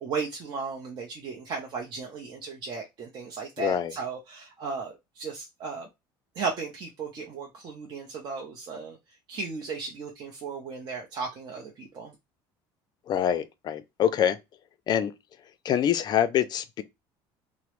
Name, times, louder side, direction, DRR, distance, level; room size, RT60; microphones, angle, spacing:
voice 1, 0.0-5.9 6.4-12.1, right 4 dB, 40° right, 0.6 m, -35 dB
voice 2, 3.6-3.9 13.1-14.4 14.9-15.1 15.6-16.8, left 9 dB, 40° left, 0.4 m, -25 dB
2.9 x 2.0 x 2.9 m
cardioid pair, 125°, 11 cm